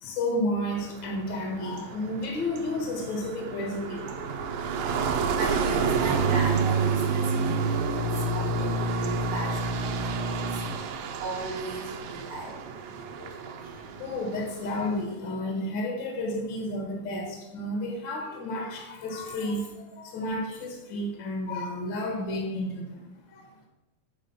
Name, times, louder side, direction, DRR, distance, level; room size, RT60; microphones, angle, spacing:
voice 1, 0.0-4.7 8.1-8.3 10.8-11.0 13.1-23.7, left 1 dB, 45° left, 0 dB, 1.6 m, -32 dB
sound 1, 0.7-15.0, right 4 dB, 90° right, 2.5 m, -29 dB
voice 2, 5.0-7.7 7.9-10.6 11.2-12.7 13.7-13.8, right 3 dB, 70° right, -4 dB, 2.6 m, -37 dB
8.3 x 5.1 x 5.6 m, 0.95 s
omnidirectional pair, 3.9 m